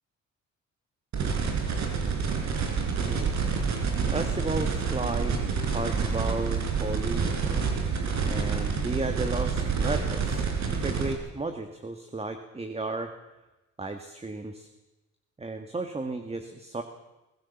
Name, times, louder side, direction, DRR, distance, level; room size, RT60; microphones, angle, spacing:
sound 1, 1.1-11.1, right 5 dB, 65° right, 4.4 m, -28 dB
voice 1, 3.1-3.4 4.1-5.4 5.7-7.3 8.2-13.1 13.8-14.7 15.4-16.8, right 3 dB, 20° right, 7 dB, 1.7 m, -34 dB
22.5 x 17.0 x 7.2 m, 1.0 s
cardioid pair, 90°, 30 cm